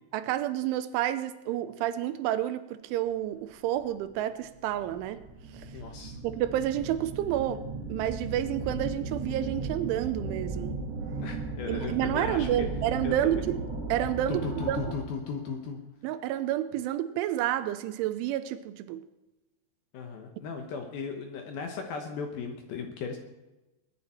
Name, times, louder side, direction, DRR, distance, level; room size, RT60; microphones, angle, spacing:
voice 1, 0.1-5.2 5.5-5.7 6.2-10.8 11.7-13.6 13.9-14.8 16.0-19.0, right 12 dB, 85° right, 11 dB, 3.2 m, -30 dB
sound 1, 3.7-3.8 4.5-15.2, right 3 dB, 45° right, 2.2 m, -36 dB
voice 2, 5.7-6.2 11.2-12.7 13.0-13.4 14.3-15.8 19.9-23.2, left 5 dB, 65° left, 3 dB, 2.5 m, -36 dB
22.0 x 10.5 x 4.4 m, 1.0 s
omnidirectional pair, 5.5 m